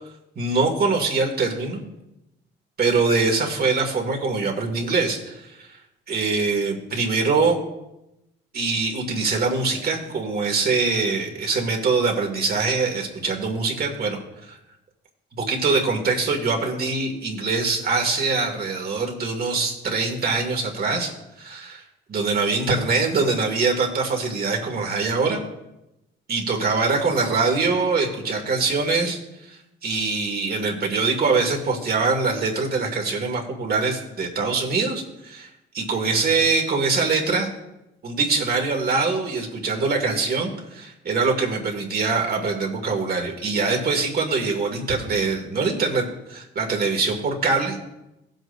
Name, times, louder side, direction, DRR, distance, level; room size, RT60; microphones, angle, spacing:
voice 1, 0.4-1.8 2.8-5.7 6.1-7.6 8.5-14.2 14.5-14.6 15.4-21.1 21.4-21.8 22.1-25.4 26.3-29.2 29.5-35.5 35.7-37.5 38.0-47.8, right 4 dB, 50° right, 1 dB, 2.3 m, -23 dB
17.0 x 7.7 x 2.7 m, 0.91 s
cardioid pair, 90°, 20 cm